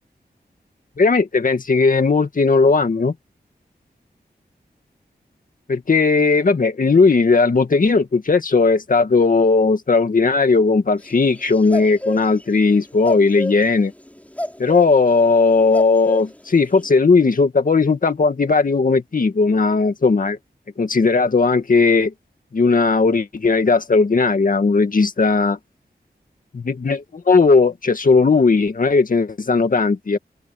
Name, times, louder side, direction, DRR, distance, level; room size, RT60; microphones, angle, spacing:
voice 1, 1.0-3.1 5.7-13.9 14.6-20.4 20.8-22.1 22.5-25.6 26.5-30.2, left 4 dB, 55° left, 2.0 m, -17 dB
sound 1, 11.0-12.7 13.0-16.9, left 1 dB, 10° left, 6.7 m, -29 dB
open air
wide cardioid pair, 120°, 17 cm